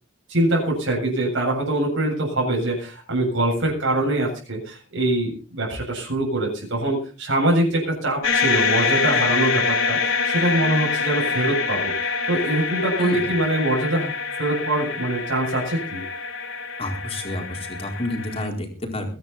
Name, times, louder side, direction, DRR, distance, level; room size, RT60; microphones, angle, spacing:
voice 1, 0.3-10.0 10.2-11.9 12.3-14.1 14.4-16.0, right 1 dB, 60° right, -2 dB, 7.7 m, -23 dB
sound 1, 8.2-18.5, left 5 dB, 65° left, 3.5 m, -25 dB
voice 2, 16.8-19.1, left 1 dB, 30° left, 3 dB, 4.3 m, -29 dB
23.0 x 10.5 x 4.2 m, 0.36 s
head